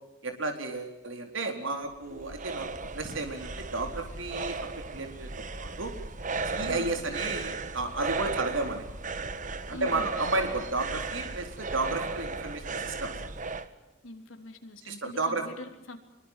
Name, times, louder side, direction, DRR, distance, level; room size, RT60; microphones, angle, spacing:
voice 1, 0.2-2.7 2.9-4.6 4.9-5.9 6.4-9.0 9.7-13.2 14.8-15.4, right 3 dB, 75° right, 4 dB, 4.2 m, -33 dB
sound 1, 1.8-13.7, right 3 dB, 40° right, 1.5 m, -36 dB
voice 2, 6.6-6.9 9.7-10.1 14.0-16.0, left 1 dB, 90° left, 5 dB, 3.6 m, -43 dB
26.0 x 23.0 x 7.5 m, 0.97 s
head